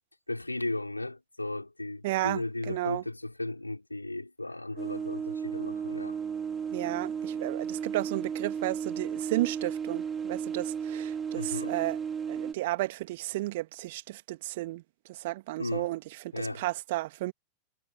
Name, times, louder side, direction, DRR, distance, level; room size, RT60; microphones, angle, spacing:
voice 1, 0.3-6.2 11.4-11.7 15.6-15.9 16.3-16.6, left 2 dB, 85° left, 5.5 m, -35 dB
voice 2, 2.0-3.0 6.7-12.0 12.3-14.8 15.1-17.3, right 18 dB, 50° right, 2.2 m, -33 dB
sound 1, 4.8-12.5, right 7 dB, 20° right, 4.1 m, -34 dB
figure-of-eight pair, 90°, 0 cm